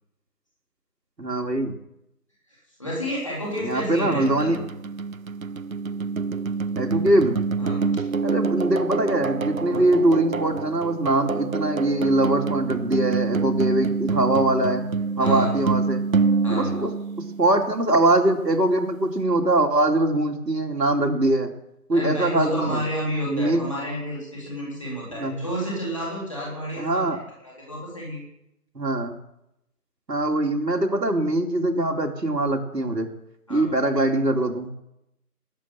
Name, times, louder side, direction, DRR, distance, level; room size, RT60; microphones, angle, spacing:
voice 1, 1.2-1.8 3.6-4.6 6.8-7.4 8.2-14.8 15.2-16.0 16.5-16.9 17.4-21.5 21.9-22.8 23.3-23.6 25.1-25.4 26.8-27.2 28.7-29.1 30.1-33.1 33.5-34.7, right 1 dB, 90° right, 2 dB, 2.8 m, -22 dB
voice 2, 2.8-4.7 7.6-8.0 9.7-9.8 15.2-15.6 16.4-16.7 21.9-27.2 27.4-28.2 33.5-33.7, equal, 20° left, -5 dB, 3.7 m, -30 dB
sound 1, 3.6-17.8, right 4 dB, 60° right, 0.5 m, -27 dB
18.5 x 7.9 x 7.2 m, 0.83 s
figure-of-eight pair, 180°, 48 cm